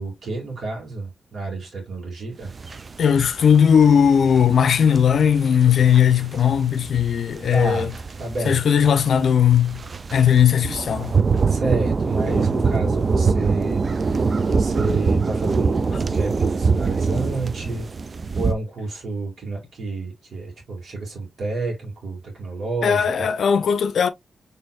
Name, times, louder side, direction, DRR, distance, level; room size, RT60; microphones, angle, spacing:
voice 1, 0.0-2.5 7.5-7.9 8.2-8.6 11.5-17.9 18.3-23.3, right 2 dB, 60° right, 2.1 m, -29 dB
sound 1, 2.5-18.5, right 4 dB, 45° right, 0.4 m, -24 dB
voice 2, 3.0-7.9 8.4-9.8 10.1-11.1 22.8-24.1, left 8 dB, 75° left, 0.5 m, -17 dB
4.4 x 3.4 x 2.3 m
cardioid pair, 90°, 0 cm